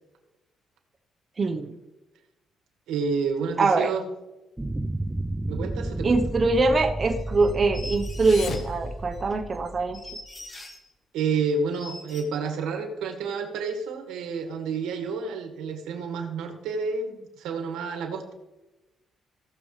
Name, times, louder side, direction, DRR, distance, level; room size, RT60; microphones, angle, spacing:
voice 1, 1.4-1.8 3.6-3.9 6.0-10.0, right 3 dB, 35° right, 3 dB, 1.0 m, -23 dB
voice 2, 2.9-4.1 5.4-6.2 11.1-18.3, right 5 dB, 85° right, 4 dB, 1.8 m, -29 dB
sound 1, 4.6-10.3, right 2 dB, 10° right, 0.5 m, -32 dB
sound 2, 7.1-8.6 9.1-10.9 11.3-11.4 11.7-12.2, left 2 dB, 30° left, 2.0 m, -43 dB
sound 3, 8.0-9.9, left 5 dB, 65° left, 1.2 m, -40 dB
17.5 x 6.9 x 3.3 m, 1.0 s
cardioid pair, 90°, 0 cm